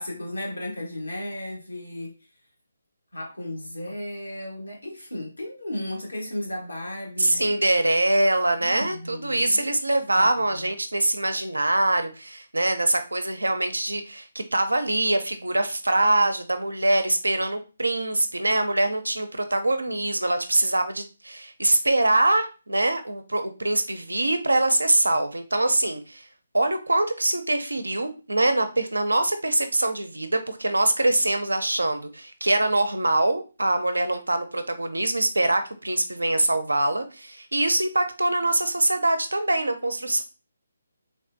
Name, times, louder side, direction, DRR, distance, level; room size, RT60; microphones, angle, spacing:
voice 1, 0.0-2.1 3.1-7.5 8.6-9.6 10.2-10.7, left 1 dB, 85° left, -2 dB, 1.4 m, -35 dB
voice 2, 7.2-26.2 26.5-40.2, right 2 dB, 85° right, 8 dB, 0.5 m, -24 dB
3.5 x 2.4 x 2.6 m, 0.33 s
figure-of-eight pair, 145°, 0 cm